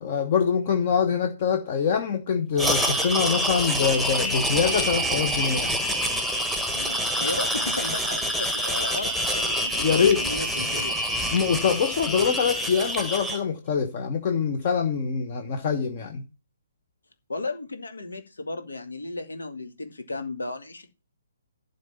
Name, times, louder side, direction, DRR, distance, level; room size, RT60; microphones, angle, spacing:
voice 1, 0.0-5.7 9.8-10.2 11.3-16.2, left 6 dB, 35° left, 1.2 m, -24 dB
sound 1, 2.6-13.4, equal, 5° left, 1.3 m, -26 dB
voice 2, 6.7-11.0 17.3-20.9, left 2 dB, 70° left, 2.0 m, -34 dB
11.5 x 4.0 x 7.0 m
figure-of-eight pair, 135°, 0 cm